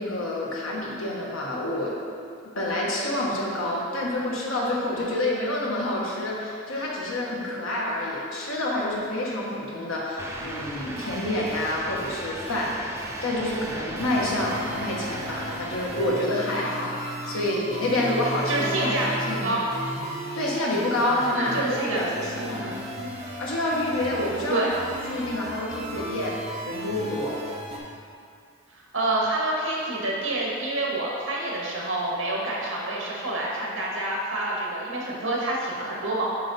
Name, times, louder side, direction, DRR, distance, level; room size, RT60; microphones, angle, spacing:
voice 1, 0.0-2.0 2.5-12.7 13.2-19.0 19.3-19.6 20.3-22.7 23.4-24.7 25.1-26.4 26.6-27.4, left 1 dB, 80° left, -4 dB, 1.4 m, -28 dB
sound 1, 10.2-16.1, right 1 dB, 10° right, 0.4 m, -37 dB
sound 2, 11.0-27.8, right 1 dB, 30° right, 1.0 m, -35 dB
voice 2, 18.5-19.7 21.3-22.0 22.3-22.8 24.5-24.7 28.7-36.3, right 2 dB, 75° right, -4 dB, 1.7 m, -28 dB
7.5 x 4.9 x 4.2 m, 2.4 s
head